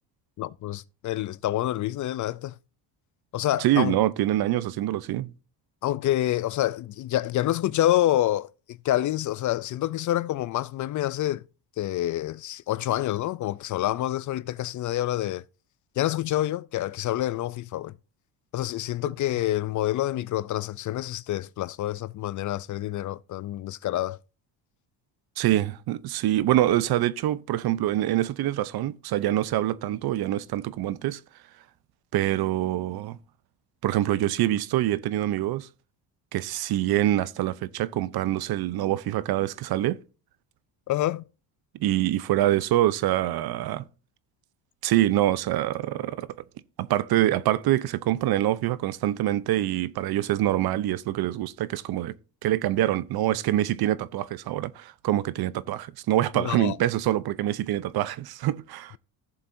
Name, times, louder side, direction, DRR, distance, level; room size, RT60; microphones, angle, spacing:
voice 1, 0.4-2.5 3.3-4.0 5.8-11.4 11.8-15.4 16.0-17.9 18.5-24.2 40.9-41.2 56.4-56.8, left 14 dB, 45° left, 0.4 m, -27 dB
voice 2, 3.6-5.3 25.4-31.2 32.1-33.2 33.8-35.7 36.3-40.0 41.8-43.8 44.8-46.3 46.8-52.1 52.4-59.0, right 14 dB, 60° right, 0.7 m, -25 dB
15.5 x 7.0 x 2.6 m
supercardioid pair, 90°, 44 cm